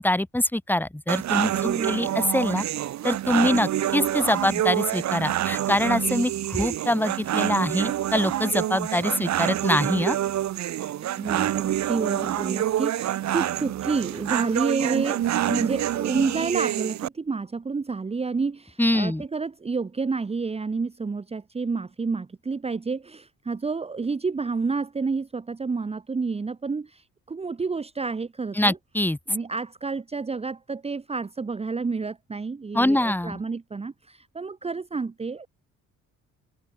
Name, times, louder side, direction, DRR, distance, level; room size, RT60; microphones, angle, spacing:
voice 1, 0.0-2.6 3.0-10.2 18.8-19.2 28.6-29.2 32.7-33.4, left 1 dB, 5° left, 2.4 m, -24 dB
sound 1, 1.1-17.1, right 12 dB, 60° right, 1.2 m, -27 dB
voice 2, 1.5-2.3 11.2-28.8 29.3-35.5, right 4 dB, 20° right, 1.3 m, -29 dB
cardioid pair, 150°, 31 cm